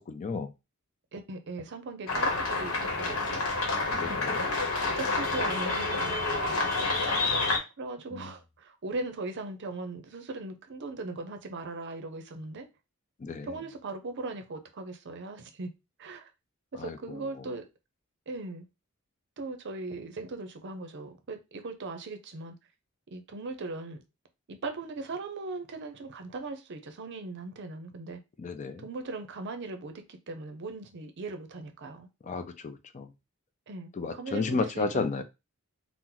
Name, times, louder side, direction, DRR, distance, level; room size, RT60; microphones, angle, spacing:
voice 1, 0.1-0.5 3.9-4.4 8.1-8.3 13.2-13.5 16.8-17.0 28.4-28.9 32.2-33.1 34.0-35.2, left 4 dB, 35° left, 0.4 m, -32 dB
voice 2, 1.1-3.4 3.9-7.0 7.8-12.7 13.4-15.7 16.0-16.3 16.7-17.7 18.3-18.7 19.4-22.6 23.1-24.0 24.5-28.2 28.8-32.1 33.7-35.1, right 3 dB, 55° right, 0.6 m, -39 dB
sound 1, 2.1-7.6, left 3 dB, 75° left, 0.9 m, -28 dB
2.9 x 2.1 x 3.7 m
head